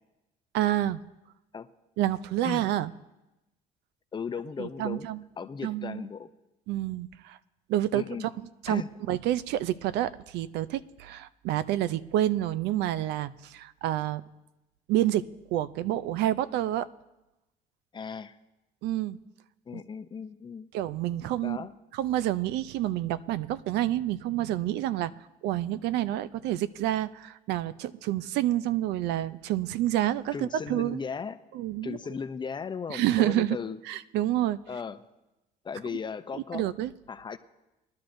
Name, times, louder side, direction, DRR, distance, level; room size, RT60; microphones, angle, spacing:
voice 1, 0.5-1.0 2.0-2.9 4.6-5.2 5.6-6.0 6.7-7.4 7.7-8.3 8.6-8.8 9.1-14.2 14.9-16.9 18.8-19.2 19.7-19.8 20.7-21.6 21.9-25.1 25.4-31.0 31.5-32.0 32.9-33.6 33.9-34.6 36.5-36.9, right 13 dB, 85° right, 16 dB, 0.4 m, -28 dB
voice 2, 4.1-5.1 5.4-6.3 7.9-8.3 8.7-8.9 17.9-18.4 19.7-20.7 21.4-21.7 30.3-31.4 31.7-33.8 34.7-35.0 35.6-36.6 37.1-37.4, left 6 dB, 25° left, 11 dB, 0.5 m, -36 dB
21.5 x 11.5 x 2.6 m, 0.99 s
cardioid pair, 110°, 17 cm